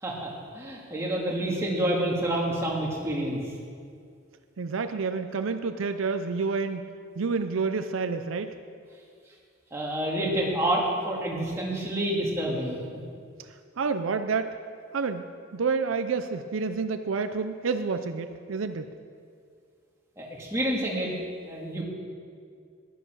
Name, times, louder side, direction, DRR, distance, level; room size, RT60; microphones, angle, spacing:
voice 1, 0.0-3.4 9.7-13.0 20.2-21.1 21.4-21.8, right 1 dB, 15° right, -4 dB, 2.0 m, -28 dB
voice 2, 4.6-8.6 13.8-14.5 14.9-15.3 15.5-18.9, right 4 dB, 75° right, 9 dB, 0.5 m, -29 dB
11.0 x 10.0 x 6.2 m, 2.2 s
head